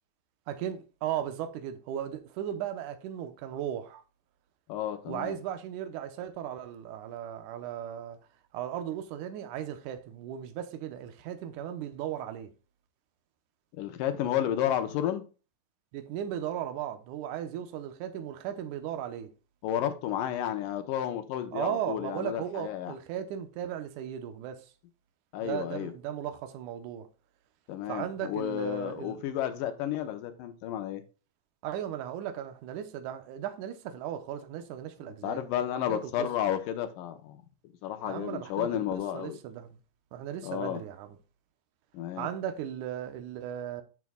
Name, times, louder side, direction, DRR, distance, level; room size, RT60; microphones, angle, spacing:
voice 1, 0.5-4.0 5.1-8.2 8.5-12.5 15.9-19.3 21.5-24.7 25.4-27.1 27.9-29.2 31.6-36.3 38.0-39.8 40.1-41.2 42.2-43.8, right 10 dB, 75° right, 2.2 m, -36 dB
voice 2, 4.7-5.4 13.7-15.2 19.6-23.0 25.3-25.9 27.7-31.0 35.1-37.4 37.8-39.4 40.4-40.8 41.9-42.3, left 11 dB, 75° left, 2.4 m, -32 dB
9.3 x 6.1 x 2.3 m
omnidirectional pair, 4.0 m